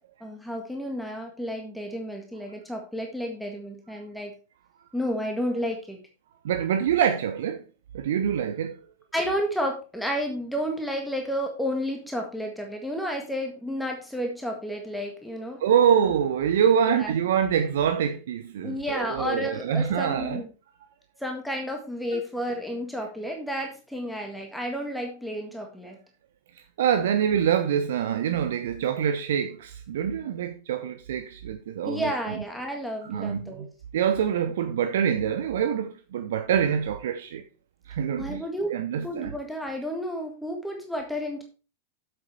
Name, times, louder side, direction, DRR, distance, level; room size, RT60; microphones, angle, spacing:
voice 1, 0.2-4.3 4.9-6.0 9.1-15.6 16.8-17.1 18.6-20.5 21.2-26.0 31.8-33.7 38.2-38.7 39.0-41.4, equal, ahead, 1.8 m, -31 dB
voice 2, 6.4-7.6 7.9-8.8 15.6-20.4 22.1-22.2 26.8-32.1 33.0-33.7 33.9-37.4 37.9-38.4 38.7-39.3, right 8 dB, 60° right, 0.8 m, -25 dB
7.9 x 7.9 x 4.7 m
figure-of-eight pair, 90°, 0 cm